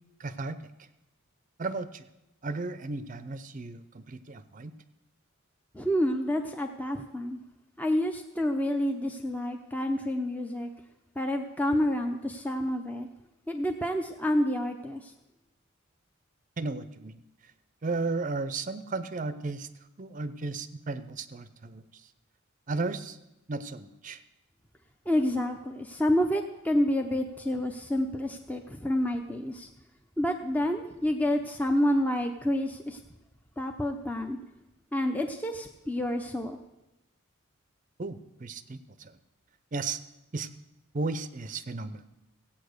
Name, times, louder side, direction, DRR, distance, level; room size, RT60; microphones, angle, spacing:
voice 1, 0.2-0.9 1.6-2.1 2.4-4.7 16.6-17.5 17.8-19.7 20.0-22.1 22.7-23.2 23.5-24.2 38.0-39.2 39.7-40.0 40.3-40.5 40.9-42.0, right 3 dB, 35° right, 13 dB, 0.6 m, -35 dB
voice 2, 5.7-7.4 7.8-10.7 11.2-13.1 13.5-15.1 25.1-29.7 30.2-33.0 33.6-34.4 34.9-36.6, left 1 dB, 5° left, 4 dB, 0.6 m, -28 dB
16.0 x 8.7 x 6.5 m, 0.92 s
head